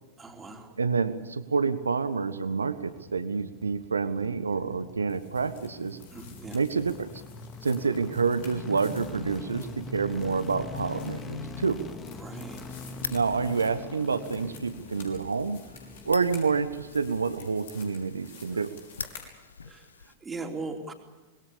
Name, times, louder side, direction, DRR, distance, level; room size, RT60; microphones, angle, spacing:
voice 1, 0.2-0.7 6.1-6.6 12.2-12.6 18.5-18.6 19.6-20.9, right 3 dB, 15° right, 2 dB, 3.8 m, -39 dB
voice 2, 0.8-6.0 6.5-7.1 7.6-11.8 13.1-15.6 16.0-18.8, right 5 dB, 80° right, 12 dB, 1.3 m, -28 dB
sound 1, 2.8-17.9 18.1-18.2, left 4 dB, 25° left, 2.3 m, -43 dB
sound 2, 5.1-19.3, left 6 dB, 60° left, 6.0 m, -52 dB
sound 3, 12.6-20.2, left 5 dB, 75° left, 1.1 m, -45 dB
26.0 x 21.5 x 7.0 m, 1.2 s
figure-of-eight pair, 95°, 0 cm